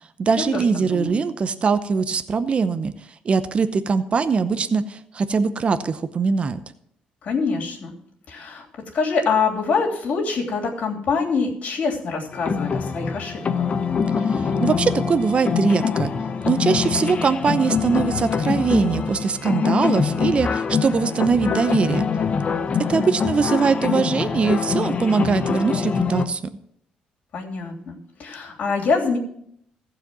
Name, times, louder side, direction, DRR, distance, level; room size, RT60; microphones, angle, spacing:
voice 1, 0.2-2.9 3.2-6.6 14.2-16.1 16.4-22.1 22.9-26.4, right 5 dB, 40° right, 11 dB, 0.7 m, -22 dB
voice 2, 7.2-7.9 8.3-8.6 8.9-13.7 22.7-23.1 27.3-29.2, left 4 dB, 60° left, 0 dB, 3.1 m, -25 dB
sound 1, 12.3-26.3, left 6 dB, 45° left, 0.8 m, -24 dB
15.0 x 5.0 x 7.5 m, 0.70 s
cardioid pair, 90°, 3 cm